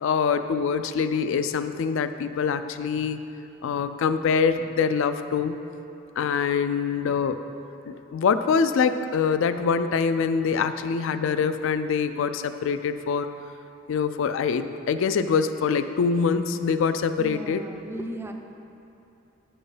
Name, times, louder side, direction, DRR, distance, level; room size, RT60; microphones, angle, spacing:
voice 1, 0.0-3.2 3.6-5.6 6.2-7.4 7.9-13.3 13.9-17.6, left 6 dB, 65° left, 11 dB, 0.3 m, -24 dB
voice 2, 17.2-18.3, right 1 dB, 10° right, 4 dB, 0.4 m, -36 dB
9.4 x 4.5 x 4.9 m, 2.8 s
head